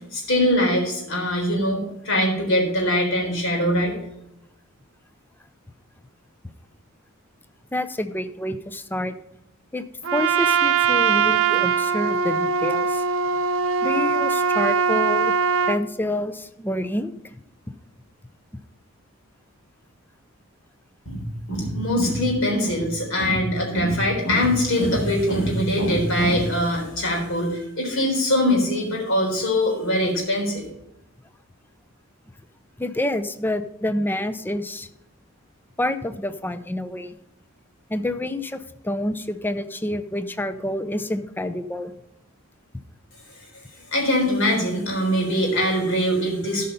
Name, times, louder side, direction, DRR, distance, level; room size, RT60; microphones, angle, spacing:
voice 1, 0.1-3.9 21.1-21.2 21.5-30.7 43.9-46.7, equal, 65° left, 0 dB, 3.9 m, -22 dB
voice 2, 7.7-9.1 9.7-9.8 10.1-13.0 13.8-15.3 15.7-17.1 32.8-34.9 35.8-37.2 37.9-41.9, left 1 dB, 10° left, 11 dB, 0.5 m, -28 dB
Trumpet, 10.0-15.8, right 6 dB, 65° right, 0.6 m, -21 dB
13.0 x 5.6 x 5.2 m, 0.82 s
head